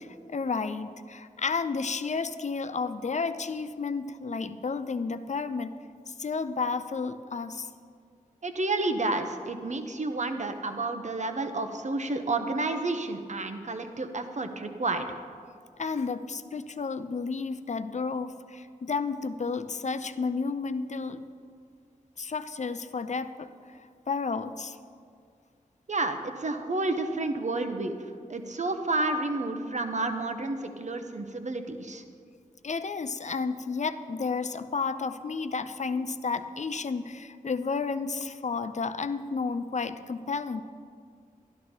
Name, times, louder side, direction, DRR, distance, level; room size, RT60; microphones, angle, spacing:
voice 1, 0.0-7.7 15.8-21.2 22.2-23.8 24.1-24.8 32.6-40.6, left 4 dB, 55° left, 11 dB, 0.6 m, -32 dB
voice 2, 8.4-15.1 25.9-28.0 28.3-32.0, right 2 dB, 55° right, 6 dB, 1.0 m, -30 dB
12.0 x 12.0 x 4.4 m, 2.2 s
cardioid pair, 55°, 15 cm